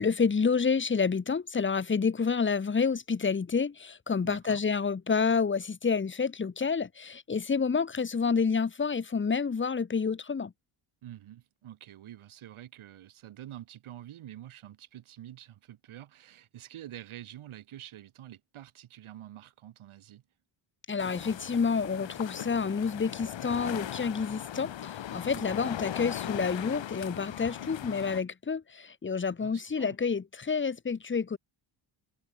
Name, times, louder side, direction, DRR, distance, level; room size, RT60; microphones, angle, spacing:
voice 1, 0.0-10.5 20.9-31.4, left 5 dB, 25° left, 1.3 m, -29 dB
voice 2, 4.2-4.6 11.0-20.2 25.3-25.6 29.4-30.0, right 12 dB, 75° right, 3.8 m, -47 dB
sound 1, 21.0-28.2, left 11 dB, 60° left, 2.2 m, -39 dB
cardioid pair, 110°, 50 cm